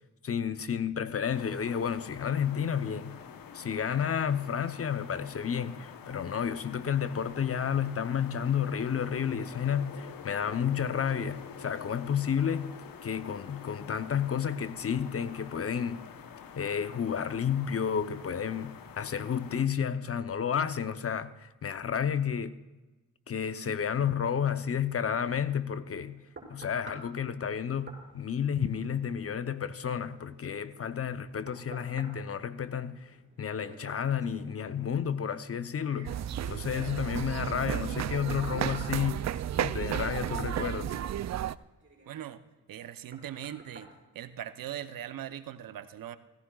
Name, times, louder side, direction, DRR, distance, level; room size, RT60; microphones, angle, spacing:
voice 1, 0.2-3.2 3.5-12.8 13.0-16.0 16.6-22.6 23.3-26.2 26.5-33.1 33.4-36.2 36.5-39.2 39.6-40.9, left 8 dB, 45° left, 0.8 m, -31 dB
sound 1, 1.3-19.7, left 7 dB, 80° left, 1.0 m, -47 dB
sound 2, 25.7-44.9 45.4-45.6, right 2 dB, 35° right, 5.4 m, -53 dB
sound 3, 36.0-41.5, right 11 dB, 50° right, 0.4 m, -33 dB
voice 2, 42.1-42.4 42.7-43.9 44.1-46.2, right 11 dB, 75° right, 0.8 m, -40 dB
17.5 x 16.0 x 2.4 m
cardioid pair, 70°, 34 cm